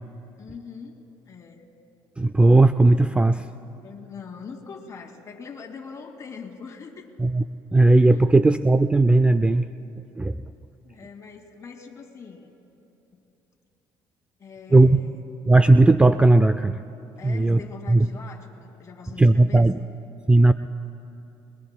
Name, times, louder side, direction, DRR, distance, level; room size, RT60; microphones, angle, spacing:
voice 1, 0.4-1.7 3.3-3.4 3.8-7.1 8.1-8.3 10.8-12.5 13.1-13.2 14.4-15.3 17.2-19.8, left 5 dB, 35° left, 1 dB, 2.3 m, -42 dB
voice 2, 2.2-3.4 7.2-7.4 7.7-9.7 10.2-10.4 14.7-15.0 15.5-16.8 17.2-17.6 17.9-18.1 19.2-19.8 20.3-20.5, right 2 dB, 10° right, 11 dB, 0.3 m, -16 dB
25.0 x 21.5 x 2.2 m, 3.0 s
cardioid pair, 95°, 9 cm